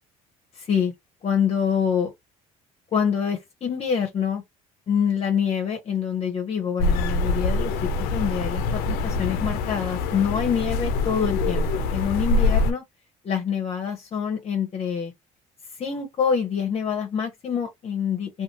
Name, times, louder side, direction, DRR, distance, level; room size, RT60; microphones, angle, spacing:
voice 1, 0.5-0.9 1.2-2.1 2.9-4.4 4.9-12.8 13.2-15.1 15.8-18.4, left 7 dB, 40° left, 0.8 m, -26 dB
sound 1, 6.8-12.7, left 3 dB, 75° left, 0.6 m, -24 dB
2.5 x 2.5 x 2.9 m
supercardioid pair, 90°, 16 cm